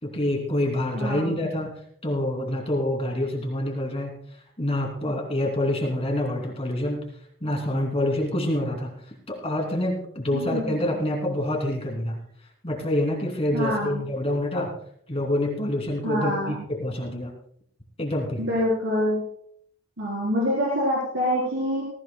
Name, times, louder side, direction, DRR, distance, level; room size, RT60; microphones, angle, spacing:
voice 1, 0.0-1.7 2.0-4.2 4.6-7.1 7.4-9.0 9.3-12.2 12.6-14.7 15.1-17.3 18.0-18.4, left 1 dB, 30° left, 0 dB, 3.0 m, -26 dB
voice 2, 0.9-1.5 10.3-10.8 13.5-14.0 16.0-16.6 18.4-19.2 20.0-21.8, equal, 70° right, -6 dB, 4.2 m, -26 dB
21.0 x 15.0 x 2.3 m, 0.66 s
head